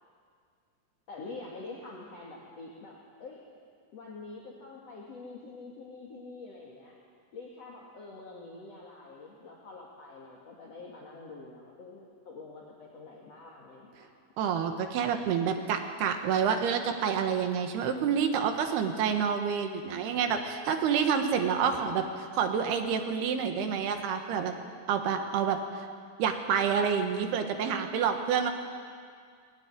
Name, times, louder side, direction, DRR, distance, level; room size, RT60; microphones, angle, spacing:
voice 1, 1.1-3.4 3.9-7.0 7.3-14.1, left 3 dB, 45° left, -3 dB, 2.8 m, -46 dB
voice 2, 14.4-24.5 24.9-25.9 26.2-28.5, right 7 dB, 85° right, 6 dB, 3.5 m, -28 dB
21.0 x 16.5 x 9.7 m, 2.1 s
omnidirectional pair, 4.5 m